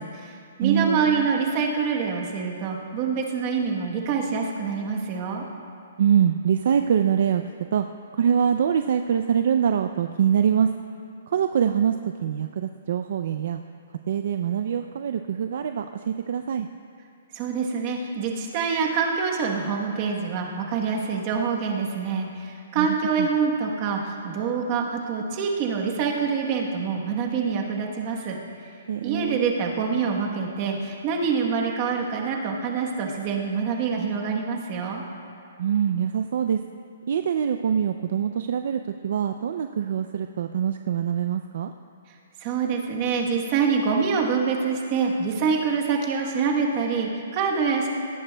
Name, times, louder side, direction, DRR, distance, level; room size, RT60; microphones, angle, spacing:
voice 1, 0.0-5.4 17.3-28.4 29.0-35.0 42.4-47.9, right 5 dB, 25° right, 1 dB, 1.1 m, -26 dB
voice 2, 0.6-1.3 6.0-7.4 7.7-7.8 8.1-10.7 11.3-11.9 12.2-13.6 14.1-16.7 22.7-22.9 23.2-23.3 28.9-29.4 35.6-36.6 37.1-41.7, right 8 dB, 50° right, 7 dB, 0.4 m, -24 dB
18.0 x 14.5 x 2.2 m, 2.4 s
hypercardioid pair, 175°, 0 cm